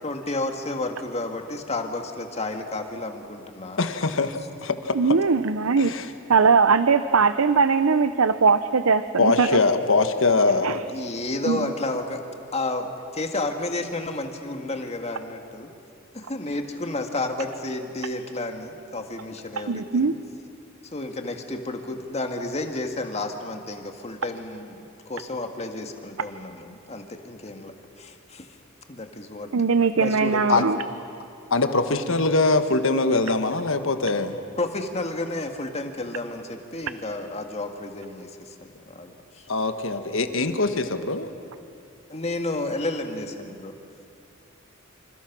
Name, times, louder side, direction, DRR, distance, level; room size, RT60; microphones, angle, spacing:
voice 1, 0.0-3.8 10.5-10.6 10.9-12.2 12.5-15.7 16.1-20.1 20.9-28.5 28.9-29.5 30.0-30.7 34.6-39.5 42.1-43.7, left 2 dB, 30° left, 5 dB, 1.9 m, -31 dB
voice 2, 3.8-5.2 5.8-6.1 9.2-10.8 30.5-30.7 31.5-34.4 39.5-41.3, left 3 dB, 65° left, 8 dB, 1.5 m, -22 dB
voice 3, 4.9-5.9 6.3-9.6 10.6-10.8 11.4-11.7 19.6-20.1 29.5-30.8, right 5 dB, 75° right, 12 dB, 0.6 m, -20 dB
27.5 x 27.0 x 6.1 m, 2.5 s
head